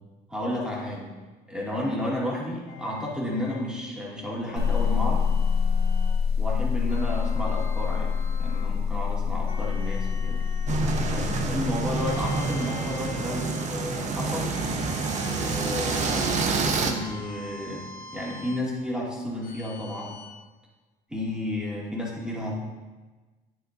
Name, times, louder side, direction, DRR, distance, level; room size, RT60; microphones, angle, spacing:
voice 1, 0.3-1.1 1.5-5.3 6.4-10.4 11.1-14.6 15.4-20.2 21.1-22.7, left 1 dB, 5° right, -4 dB, 2.2 m, -32 dB
sound 1, 2.7-3.7 4.4-6.2 6.9-8.8 9.5-11.2 11.9-13.8 14.5-16.3 16.9-18.7 19.4-20.3, left 1 dB, 50° left, 1.6 m, -44 dB
sound 2, 4.6-12.4, left 6 dB, 70° left, 0.9 m, -26 dB
sound 3, 10.7-16.9, right 4 dB, 45° right, 0.9 m, -27 dB
8.9 x 7.9 x 2.6 m, 1.2 s
cardioid pair, 110°, 17 cm